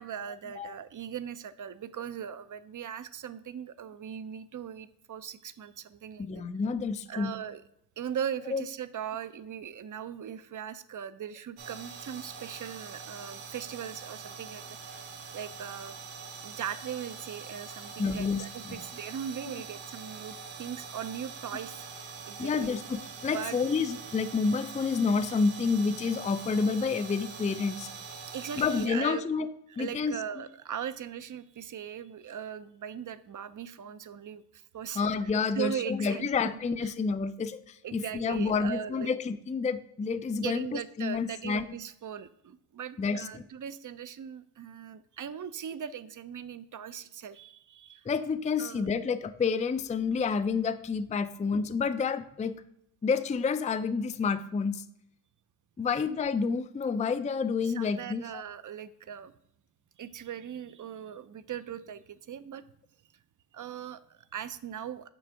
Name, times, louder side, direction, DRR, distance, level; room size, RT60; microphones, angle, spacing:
voice 1, 0.0-6.4 7.1-7.6 8.0-15.9 16.4-22.7 23.3-23.6 28.3-29.3 29.7-35.0 35.5-36.9 37.8-39.1 40.4-48.1 48.6-48.9 57.6-59.3 60.0-62.6 63.5-65.1, right 9 dB, 40° right, 14 dB, 0.6 m, -39 dB
voice 2, 6.2-7.3 8.5-8.6 18.0-18.8 22.4-27.9 28.6-29.5 29.8-30.2 34.9-41.7 43.0-43.4 48.1-52.6 53.0-54.8 55.8-58.4, left 5 dB, 15° left, 12 dB, 0.4 m, -29 dB
sound 1, 11.6-28.9, right 5 dB, 85° right, 1.4 m, -44 dB
6.2 x 3.4 x 4.7 m, 0.78 s
supercardioid pair, 45°, 46 cm